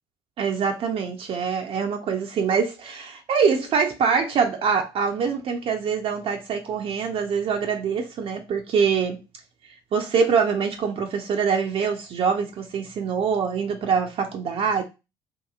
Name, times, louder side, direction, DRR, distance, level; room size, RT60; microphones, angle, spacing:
voice 1, 0.4-9.2 9.9-14.8, right 6 dB, 55° right, 0.6 m, -24 dB
2.9 x 2.5 x 2.4 m
hypercardioid pair, 60°, 12 cm